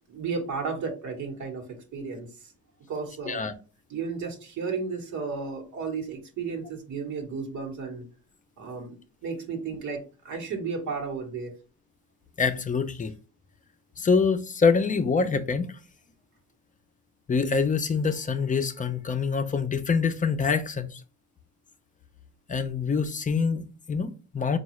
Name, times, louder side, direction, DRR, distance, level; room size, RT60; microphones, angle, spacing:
voice 1, 0.1-2.3 2.9-3.4 3.9-8.0 8.6-11.5, right 5 dB, 70° right, 1.2 m, -33 dB
voice 2, 12.4-13.1 14.0-15.7 17.3-21.0 22.5-24.6, left 5 dB, 25° left, 0.5 m, -25 dB
4.6 x 2.4 x 3.0 m
cardioid pair, 90°, 30 cm